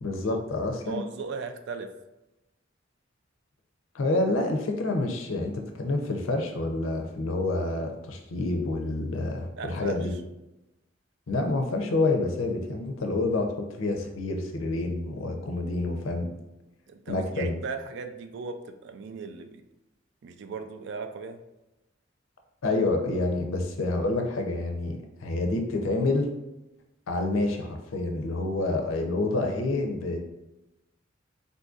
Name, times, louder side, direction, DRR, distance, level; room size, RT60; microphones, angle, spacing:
voice 1, 0.0-1.0 3.9-10.1 11.3-16.3 17.1-17.5 22.6-26.3 27.1-30.2, left 2 dB, 85° left, 3 dB, 0.5 m, -28 dB
voice 2, 0.8-1.9 9.6-10.0 16.9-19.6 20.2-21.4, right 5 dB, 60° right, 8 dB, 0.3 m, -37 dB
3.8 x 2.6 x 2.4 m, 0.95 s
head